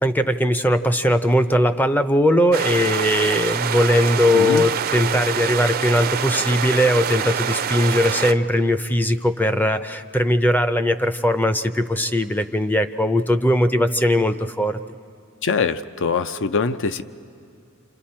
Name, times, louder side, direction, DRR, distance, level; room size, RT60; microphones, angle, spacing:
voice 1, 0.0-14.8, left 1 dB, 10° left, 10 dB, 0.5 m, -19 dB
sound 1, 2.5-8.3, right 8 dB, 45° right, 0.5 m, -25 dB
voice 2, 4.3-4.6 15.4-17.0, left 5 dB, 60° left, 12 dB, 0.6 m, -23 dB
28.0 x 28.0 x 4.3 m, 2.4 s
head